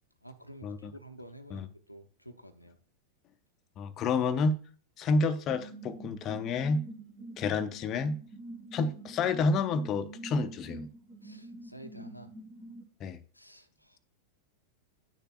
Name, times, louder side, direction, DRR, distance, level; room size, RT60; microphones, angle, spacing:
voice 1, 0.2-2.8 11.2-12.3 13.3-14.0, right 1 dB, 90° left, 0.6 m, -50 dB
voice 2, 3.8-4.6 5.0-6.8 7.4-8.2 8.7-10.9 13.0-13.2, left 4 dB, 30° left, 0.6 m, -29 dB
sound 1, 5.5-12.8, right 2 dB, 35° right, 1.1 m, -46 dB
10.0 x 6.7 x 2.4 m
figure-of-eight pair, 90°, 0 cm